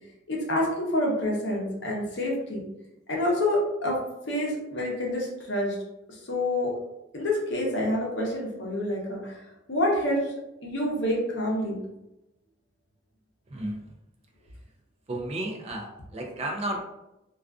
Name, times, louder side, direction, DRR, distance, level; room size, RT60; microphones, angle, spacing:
voice 1, 0.3-2.7 3.1-4.0 4.3-5.8 6.3-6.7 7.1-9.4 9.7-10.3 10.6-11.8, left 1 dB, 60° left, -2 dB, 0.7 m, -27 dB
voice 2, 13.5-13.9 15.1-16.8, right 1 dB, 30° right, 1 dB, 0.3 m, -33 dB
2.4 x 2.3 x 2.3 m, 0.90 s
head